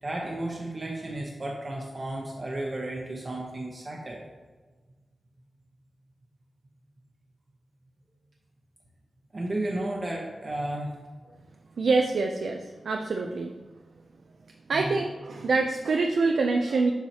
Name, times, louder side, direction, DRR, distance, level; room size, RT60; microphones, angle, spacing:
voice 1, 0.0-4.2 9.3-10.9 14.7-15.0, right 1 dB, 35° right, -2 dB, 0.8 m, -33 dB
voice 2, 11.8-13.5 14.7-16.9, right 3 dB, 75° right, 3 dB, 0.4 m, -25 dB
7.1 x 4.7 x 2.8 m, 1.3 s
wide cardioid pair, 90°, 0 cm